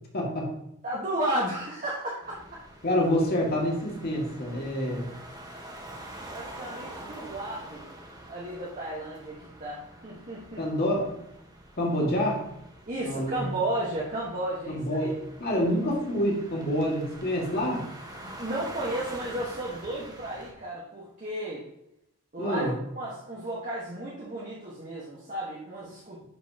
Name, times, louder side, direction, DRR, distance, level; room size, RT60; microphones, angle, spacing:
voice 1, 0.1-0.5 2.8-5.1 10.6-11.1 11.8-12.4 13.0-13.4 14.7-15.1 15.4-17.8 22.4-22.7, equal, 45° left, -2 dB, 2.1 m, -27 dB
voice 2, 0.8-2.4 6.3-7.8 8.3-10.6 12.9-15.1 15.5-15.6 18.2-21.7 22.3-26.2, right 1 dB, 35° right, -6 dB, 1.4 m, -33 dB
sound 1, 2.2-20.5, right 1 dB, 20° right, 1.3 m, -45 dB
11.0 x 5.4 x 2.9 m, 0.81 s
head